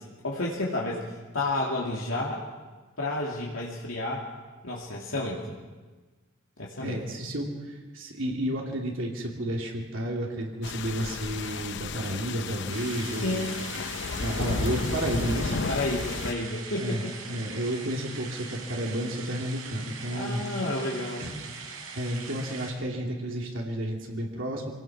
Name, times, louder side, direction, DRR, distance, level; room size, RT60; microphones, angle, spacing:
voice 1, 0.0-2.4 3.0-4.3 4.6-5.6 6.6-7.0 13.1-13.6 15.7-17.0 20.1-21.2, left 2 dB, 75° left, -4 dB, 2.6 m, -31 dB
voice 2, 6.8-13.5 14.2-15.6 16.8-20.4 21.2-21.3 21.9-24.7, right 1 dB, 65° right, -1 dB, 2.9 m, -31 dB
sound 1, 10.6-16.3, left 4 dB, 55° left, 0.7 m, -33 dB
sound 2, 12.7-22.7, right 5 dB, 85° right, 4.7 m, -42 dB
25.5 x 18.0 x 6.2 m, 1.3 s
head